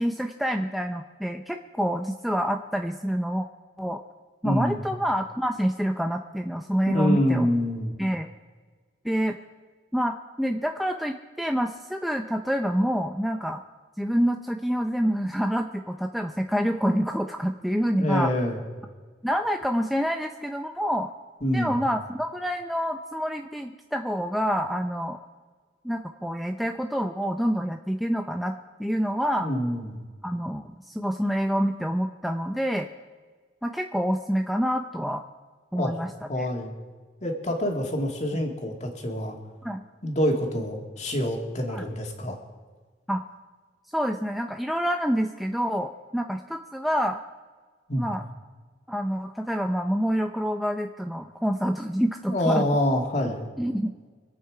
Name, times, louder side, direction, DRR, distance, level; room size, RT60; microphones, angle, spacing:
voice 1, 0.0-3.5 3.8-4.0 4.4-7.5 8.0-8.3 9.0-9.4 9.9-13.6 14.0-18.3 19.2-21.1 21.5-25.2 25.8-28.5 28.8-29.5 30.2-32.9 33.6-35.2 35.7-36.1 36.4-36.5 39.6-39.8 41.7-41.9 43.1-43.2 43.9-47.2 48.0-48.2 48.9-52.6 53.6-53.9, equal, ahead, 4 dB, 0.5 m, -27 dB
voice 2, 4.4-4.8 6.9-7.9 18.0-18.6 21.4-21.8 29.4-30.0 35.7-36.0 36.3-36.7 37.2-39.4 40.0-42.4 47.9-48.1 52.3-53.5, left 1 dB, 40° left, 2 dB, 2.2 m, -26 dB
25.5 x 8.5 x 4.9 m, 1.5 s
head